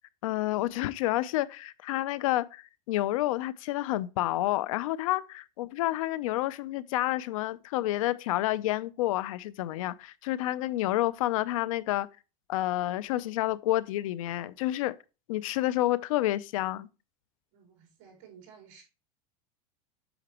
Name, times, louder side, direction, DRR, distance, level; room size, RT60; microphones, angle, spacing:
voice 1, 0.2-12.1 12.5-15.0 15.3-16.9, left 15 dB, 90° left, 0.5 m, -29 dB
voice 2, 17.5-18.8, right 7 dB, 50° right, 4.4 m, -54 dB
7.9 x 6.0 x 2.9 m
supercardioid pair, 160°, 17 cm